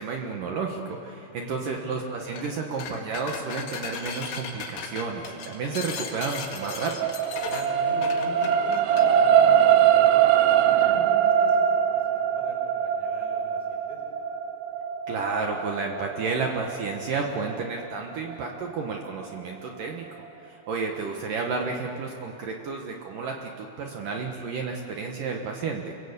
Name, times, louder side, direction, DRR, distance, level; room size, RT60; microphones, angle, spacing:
voice 1, 0.0-7.1 15.1-20.1 20.4-25.9, right 4 dB, 70° right, 2 dB, 2.0 m, -31 dB
voice 2, 1.1-1.9 7.4-14.0 21.7-21.8, left 1 dB, 10° left, -1 dB, 4.2 m, -44 dB
sound 1, 2.3-2.5 2.8-9.1, left 6 dB, 80° left, 4.4 m, -37 dB
sound 2, 6.2-18.7 19.2-19.4, right 9 dB, 90° right, 3.6 m, -22 dB
29.5 x 21.0 x 8.3 m, 3.0 s
omnidirectional pair, 5.8 m